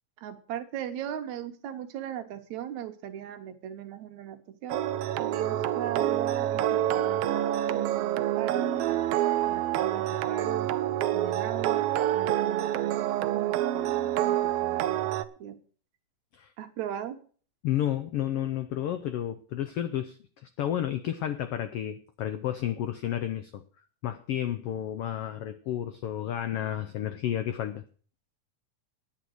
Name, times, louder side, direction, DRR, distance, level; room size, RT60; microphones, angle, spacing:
voice 1, 0.2-4.8 5.2-9.0 9.5-10.7 11.1-15.1 15.4-15.6 16.6-17.2, right 10 dB, 75° right, 8 dB, 2.3 m, -38 dB
sound 1, 4.7-15.2, right 12 dB, 90° right, 1.3 m, -27 dB
voice 2, 17.6-20.2 20.6-23.6 24.0-27.8, left 11 dB, 85° left, 11 dB, 1.3 m, -31 dB
9.7 x 9.5 x 6.3 m, 0.43 s
omnidirectional pair, 3.4 m